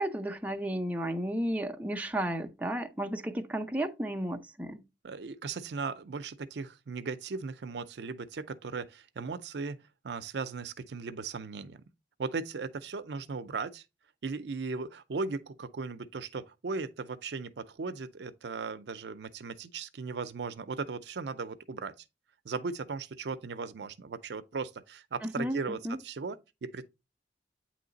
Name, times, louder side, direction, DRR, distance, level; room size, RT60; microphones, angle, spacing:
voice 1, 0.0-4.8 25.2-26.0, right 1 dB, 10° right, 0.5 m, -33 dB
voice 2, 5.0-9.8 10.0-11.8 12.2-13.8 14.2-21.9 22.4-26.8, right 4 dB, 70° right, 0.5 m, -37 dB
8.5 x 3.1 x 3.9 m
head